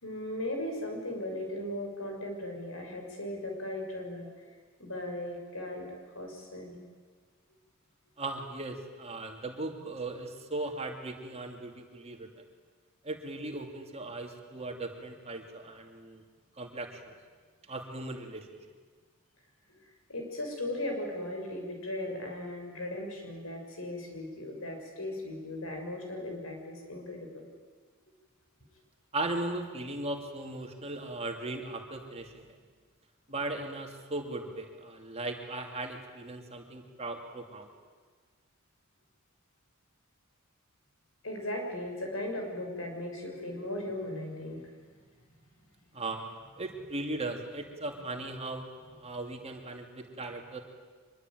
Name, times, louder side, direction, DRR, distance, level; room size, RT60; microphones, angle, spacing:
voice 1, 0.0-4.3 4.8-6.8 19.7-19.8 20.1-27.4 41.2-44.6, left 1 dB, 75° left, 2 dB, 6.5 m, -37 dB
voice 2, 8.2-12.3 13.0-16.2 16.6-17.1 17.7-18.5 29.1-32.5 33.3-37.7 45.9-50.6, right 2 dB, 30° right, 3 dB, 2.7 m, -38 dB
24.5 x 22.0 x 9.3 m, 1.5 s
head